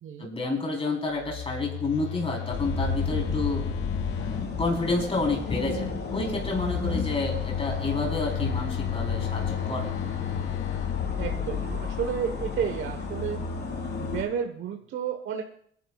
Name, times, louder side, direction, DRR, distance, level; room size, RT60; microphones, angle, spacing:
voice 1, 0.2-3.6 4.2-9.9, left 3 dB, 30° left, 0 dB, 3.9 m, -30 dB
Telephone, 1.1-5.1 6.3-12.0, left 16 dB, 90° left, 0.6 m, -34 dB
sound 1, 2.5-14.2, left 4 dB, 55° left, 4.6 m, -32 dB
voice 2, 11.2-13.4 14.0-15.4, right 8 dB, 75° right, 4 dB, 1.2 m, -32 dB
27.5 x 10.0 x 2.4 m, 0.64 s
cardioid pair, 90°, 20 cm